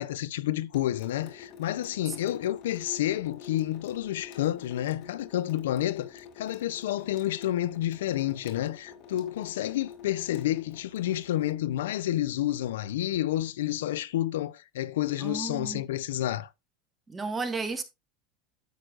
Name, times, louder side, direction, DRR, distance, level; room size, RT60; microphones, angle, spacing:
voice 1, 0.0-16.5, left 13 dB, 90° left, 0.5 m, -30 dB
Water tap faucet / Sink (filling or washing) / Drip, 0.7-11.5, left 7 dB, 55° left, 2.2 m, -48 dB
voice 2, 15.2-15.8 17.1-17.8, right 3 dB, 15° right, 1.6 m, -33 dB
10.0 x 7.8 x 2.4 m
supercardioid pair, 115°, 0 cm